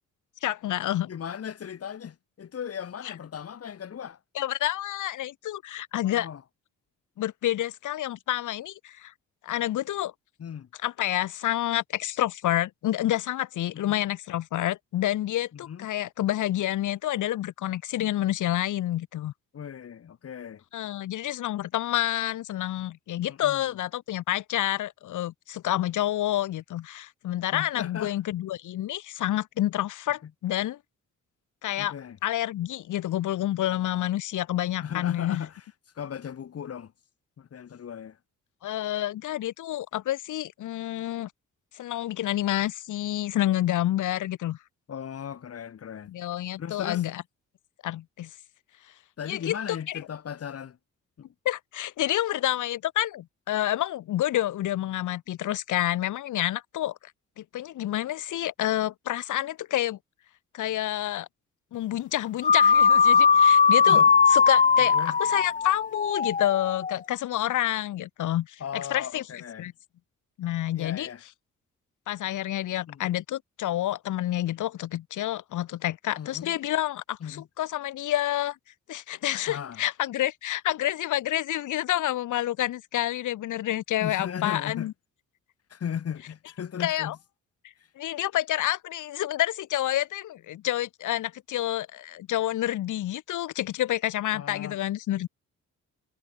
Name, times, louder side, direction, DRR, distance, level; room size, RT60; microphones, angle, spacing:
voice 1, 0.4-1.1 3.0-3.1 4.3-6.3 7.2-9.1 9.4-10.1 10.8-19.3 20.7-30.8 31.6-31.9 32.2-35.4 38.6-41.3 41.7-44.6 46.1-47.2 47.8-48.3 49.2-50.0 51.4-57.0 57.4-60.0 60.5-61.3 61.7-64.0 64.3-69.7 70.4-71.1 72.1-78.6 78.9-84.9 86.8-87.1 87.9-95.3, left 13 dB, 80° left, 1.7 m, -28 dB
voice 2, 1.1-4.2 6.0-6.4 10.4-10.7 13.7-14.0 15.5-15.9 19.5-20.6 23.3-23.8 27.5-28.1 30.2-30.3 31.8-32.2 34.8-35.6 35.9-36.9 37.4-38.2 44.9-46.1 46.6-47.0 49.2-50.8 51.2-51.3 63.8-64.1 64.8-65.2 68.6-69.7 70.7-71.2 72.9-73.0 76.2-76.6 77.2-77.5 79.5-79.8 84.0-84.9 85.7-87.2 94.3-94.8, left 8 dB, 50° left, 4.8 m, -37 dB
sound 1, 62.4-67.0, left 6 dB, 25° left, 0.8 m, -19 dB
cardioid pair, 125°, 30 cm